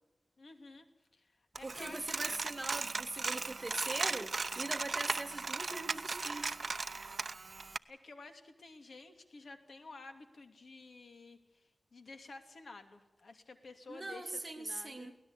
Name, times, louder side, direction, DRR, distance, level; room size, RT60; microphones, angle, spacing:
voice 1, 0.4-0.9 1.1-2.0 7.9-15.2, left 3 dB, 70° left, 7 dB, 2.7 m, -52 dB
voice 2, 1.6-6.6 13.9-15.1, right 2 dB, 25° right, 5 dB, 2.5 m, -42 dB
Coin (dropping), 1.6-7.8, right 4 dB, 55° right, 0.7 m, -37 dB
23.5 x 18.0 x 8.3 m, 0.98 s
wide cardioid pair, 95°, 0 cm